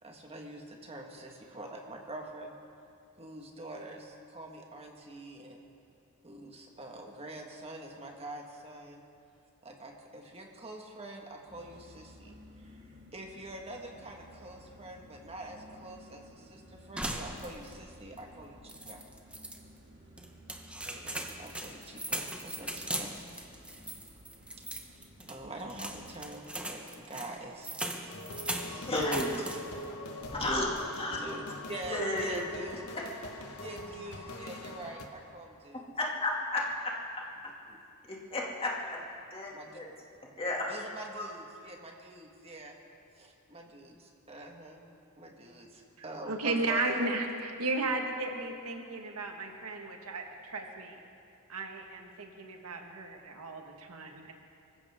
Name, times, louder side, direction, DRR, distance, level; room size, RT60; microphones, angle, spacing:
voice 1, 0.0-2.5 3.2-5.6 6.2-9.0 9.6-19.0 20.8-23.1 24.7-27.7 29.7-29.8 31.1-32.9 33.5-35.9 37.7-37.8 39.5-39.8 40.7-42.8 43.1-44.8 45.2-47.0, right 1 dB, 30° right, 1 dB, 1.7 m, -45 dB
sound 1, 11.5-26.2, equal, 50° right, 2.6 m, -55 dB
sound 2, 17.0-17.9 18.2-18.3 18.7-19.6 20.2-29.9 30.2-30.7, right 1 dB, 5° right, 1.0 m, -40 dB
sound 3, 28.1-35.1, left 2 dB, 85° left, 1.4 m, -44 dB
voice 2, 28.7-29.5 30.3-31.3 31.9-32.4 32.9-33.0 36.0-37.2 38.0-39.0 39.3-39.9 40.4-40.7 41.1-41.3, left 1 dB, 25° left, -3 dB, 2.4 m, -33 dB
voice 3, 46.3-51.0 51.5-54.3, right 2 dB, 90° right, 3 dB, 1.7 m, -34 dB
24.5 x 15.0 x 3.7 m, 2.5 s
head